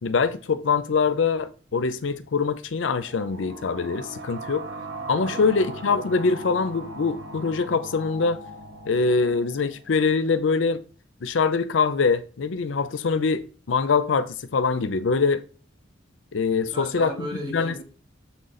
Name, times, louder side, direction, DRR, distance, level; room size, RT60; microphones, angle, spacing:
voice 1, 0.0-4.7 5.1-8.4 8.9-10.8 11.2-15.4 16.3-17.1 17.5-17.8, left 4 dB, 70° left, 0.5 m, -23 dB
sound 1, 2.9-10.3, right 1 dB, 70° right, 1.3 m, -39 dB
voice 2, 4.9-5.6 16.7-17.8, right 1 dB, 25° right, 2.4 m, -36 dB
7.3 x 3.8 x 4.0 m
head